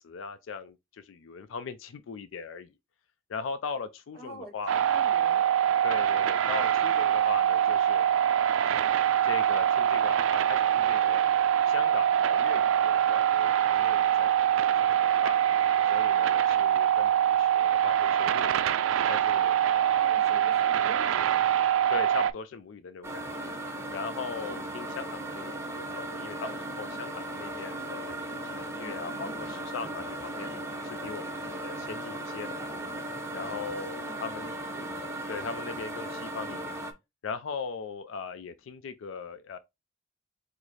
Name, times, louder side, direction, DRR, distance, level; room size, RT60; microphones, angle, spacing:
voice 1, 0.0-2.7 3.3-4.8 5.8-8.1 9.2-11.2 11.7-15.4 15.8-18.6 19.1-20.1 21.9-23.5 23.9-30.5 30.8-32.7 33.3-34.5 35.3-36.8 37.2-39.6, left 5 dB, 80° left, 0.4 m, -39 dB
voice 2, 4.1-4.5 4.8-5.4 19.9-21.4 33.9-34.4 34.8-35.1, right 2 dB, 15° left, 1.7 m, -46 dB
sound 1, 4.7-22.3, right 10 dB, 90° right, 0.3 m, -24 dB
sound 2, 23.0-36.9, right 1 dB, 15° right, 0.7 m, -37 dB
4.7 x 2.0 x 4.0 m
head